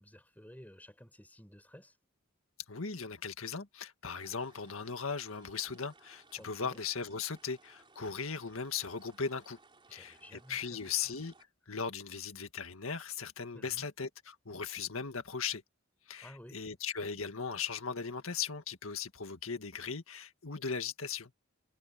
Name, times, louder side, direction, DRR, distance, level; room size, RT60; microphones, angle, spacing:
voice 1, 0.0-2.0 6.4-6.8 9.9-11.0 13.5-13.9 16.2-16.6, equal, 10° left, 5.0 m, -54 dB
voice 2, 2.7-9.6 9.9-10.2 10.5-11.3 11.7-15.6 16.1-21.3, left 6 dB, 85° left, 1.8 m, -38 dB
sound 1, 4.1-11.4, right 3 dB, 25° right, 4.2 m, -62 dB
head